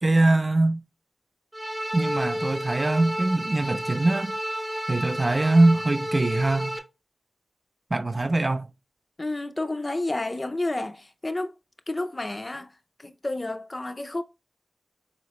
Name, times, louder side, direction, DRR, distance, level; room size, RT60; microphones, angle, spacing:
voice 1, 0.0-0.8 1.9-4.3 4.9-6.8 7.9-8.7, right 2 dB, 40° right, 0.4 m, -22 dB
sound 1, 1.5-6.8, equal, 15° right, 0.9 m, -31 dB
voice 2, 9.2-11.5 11.9-12.7 13.0-14.2, left 2 dB, 30° left, 0.5 m, -30 dB
3.9 x 2.9 x 3.1 m
cardioid pair, 50°, 0 cm